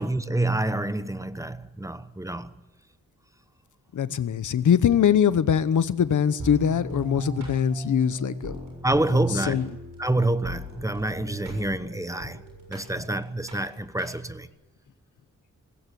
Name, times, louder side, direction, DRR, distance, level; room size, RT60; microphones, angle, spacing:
voice 1, 0.0-2.5 8.8-9.7 10.0-12.4 12.7-14.5, right 2 dB, 10° right, 1.0 m, -27 dB
voice 2, 3.9-8.6 9.5-9.6, left 8 dB, 80° left, 0.9 m, -22 dB
sound 1, 6.4-14.5, equal, 90° right, 7.1 m, -37 dB
19.5 x 16.5 x 9.3 m
wide cardioid pair, 95°, 30 cm